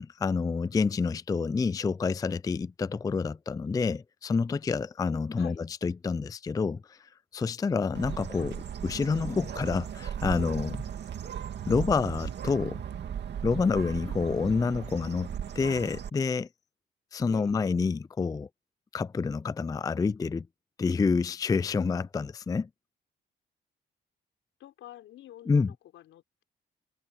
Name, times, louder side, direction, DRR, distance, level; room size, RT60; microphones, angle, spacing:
voice 1, 0.0-8.6 8.8-10.8 11.7-12.8 13.4-16.5 17.1-18.5 18.9-20.5 20.8-22.7 25.5-25.7, left 4 dB, 20° left, 0.4 m, -28 dB
Bird, 7.9-16.1, right 8 dB, 60° right, 2.3 m, -37 dB
voice 2, 24.6-26.4, left 13 dB, 85° left, 4.3 m, -48 dB
cardioid pair, 90°, 20 cm